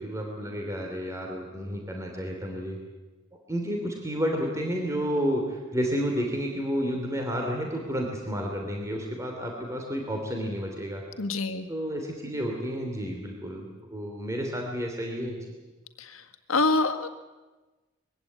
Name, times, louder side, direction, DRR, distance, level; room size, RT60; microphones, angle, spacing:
voice 1, 0.0-2.8 3.5-11.0 11.7-15.5, equal, 15° right, 1 dB, 3.0 m, -31 dB
voice 2, 11.2-11.7 16.5-17.1, left 3 dB, 85° left, 8 dB, 1.7 m, -25 dB
22.5 x 16.0 x 9.6 m, 1.2 s
head